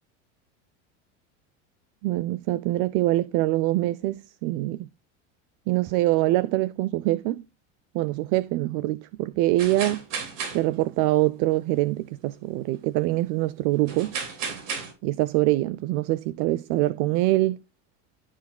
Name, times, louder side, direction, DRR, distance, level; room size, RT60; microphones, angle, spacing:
voice 1, 2.0-4.9 5.7-7.4 7.9-10.0 10.5-14.1 15.0-17.6, right 17 dB, 55° right, 0.5 m, -24 dB
sound 1, 9.6-11.1 11.5-11.6 13.9-14.9, right 5 dB, 90° right, 3.1 m, -33 dB
14.0 x 5.0 x 2.2 m
supercardioid pair, 110°, 36 cm